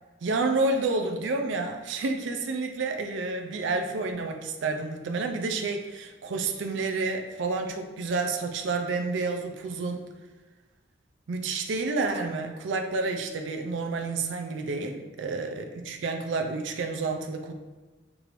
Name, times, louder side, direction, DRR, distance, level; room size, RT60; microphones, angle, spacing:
voice 1, 0.2-10.1 11.3-17.5, right 3 dB, 80° right, 4 dB, 0.4 m, -29 dB
4.7 x 2.5 x 3.0 m, 1.3 s
head